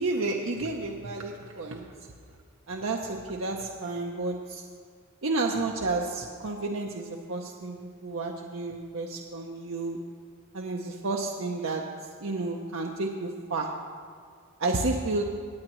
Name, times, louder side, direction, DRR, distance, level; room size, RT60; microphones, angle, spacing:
voice 1, 0.0-1.8 2.7-4.6 5.2-10.0 10.5-11.8 12.2-13.7 14.6-15.2, right 3 dB, 70° right, 0 dB, 0.7 m, -31 dB
18.5 x 8.8 x 3.1 m, 2.1 s
head